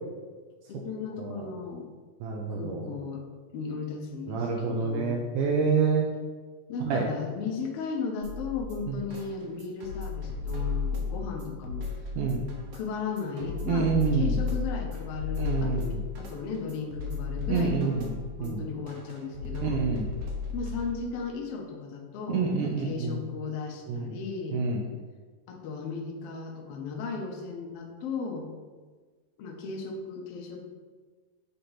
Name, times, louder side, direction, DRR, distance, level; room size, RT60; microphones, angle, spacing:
voice 1, 0.7-1.9 2.5-3.2 3.5-5.2 6.7-11.9 12.7-18.1 18.4-19.8 20.5-24.6 25.5-28.5 29.4-30.6, left 5 dB, 75° left, 1 dB, 1.4 m, -36 dB
voice 2, 2.2-2.9 4.3-6.1 6.8-7.1 8.9-9.0 12.2-12.4 13.6-14.4 15.4-16.0 17.5-18.1 18.4-18.7 19.6-20.1 22.3-23.2 23.9-24.1 24.5-24.8, right 5 dB, 80° right, -1 dB, 2.1 m, -27 dB
sound 1, 8.2-21.2, left 5 dB, 65° right, 1.6 m, -34 dB
8.4 x 3.0 x 5.5 m, 1.4 s
omnidirectional pair, 3.9 m